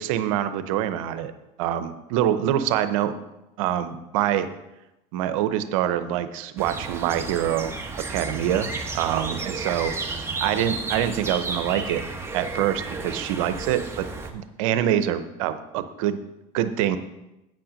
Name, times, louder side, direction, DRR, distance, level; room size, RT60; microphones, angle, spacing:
voice 1, 0.0-1.3 1.6-3.1 3.6-4.5 5.1-7.7 8.1-12.0 12.3-14.1 14.3-16.2 16.5-17.0, right 11 dB, 85° right, 11 dB, 0.7 m, -25 dB
sound 1, 6.6-14.3, right 3 dB, 15° right, 1.2 m, -32 dB
8.9 x 6.0 x 5.1 m, 0.94 s
supercardioid pair, 95°, 17 cm